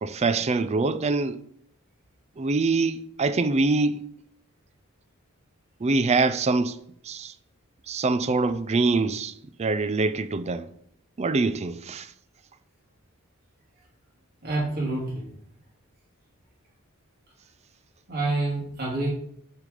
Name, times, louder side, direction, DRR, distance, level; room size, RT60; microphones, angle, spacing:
voice 1, 0.0-1.4 2.4-3.9 5.8-6.8 7.1-7.3 7.9-9.3 9.6-10.7 11.2-12.1, right 3 dB, 30° right, 0.4 m, -24 dB
voice 2, 14.4-15.3 18.1-19.1, right 2 dB, 45° right, 3.0 m, -27 dB
7.0 x 5.0 x 5.1 m
head